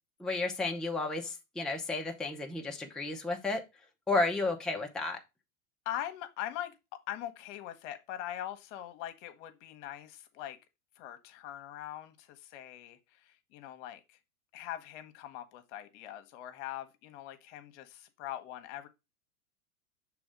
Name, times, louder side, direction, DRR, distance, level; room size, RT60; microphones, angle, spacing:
voice 1, 0.2-3.6 4.1-5.2, left 3 dB, ahead, 0.7 m, -32 dB
voice 2, 5.8-10.6 11.0-14.2 14.5-18.9, left 12 dB, 55° left, 1.1 m, -42 dB
6.2 x 3.3 x 5.0 m
hypercardioid pair, 100°, 43 cm